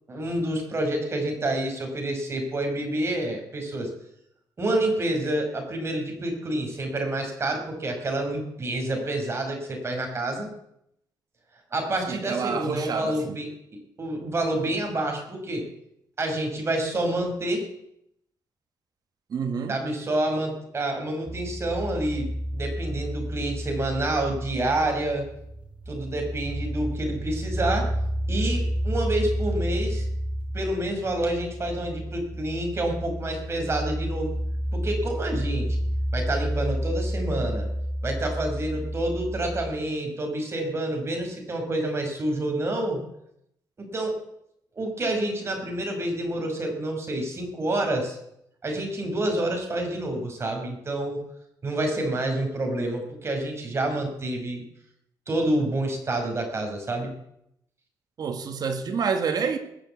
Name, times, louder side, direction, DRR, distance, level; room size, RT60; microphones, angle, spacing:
voice 1, 0.1-3.9 4.6-10.5 11.7-13.5 14.0-15.7 16.2-17.6 19.7-25.3 25.9-27.9 28.3-30.1 30.5-34.3 34.7-35.8 36.1-37.7 38.0-43.0 43.8-44.2 44.8-48.2 48.6-51.2 51.6-54.6 55.3-57.1, right 1 dB, 35° right, 5.3 m, -28 dB
voice 2, 12.1-13.4 19.3-19.8 58.2-59.6, right 6 dB, 55° right, 1.7 m, -28 dB
sound 1, 21.3-39.7, equal, 15° right, 5.9 m, -30 dB
20.0 x 7.2 x 8.4 m
cardioid pair, 95°, 8 cm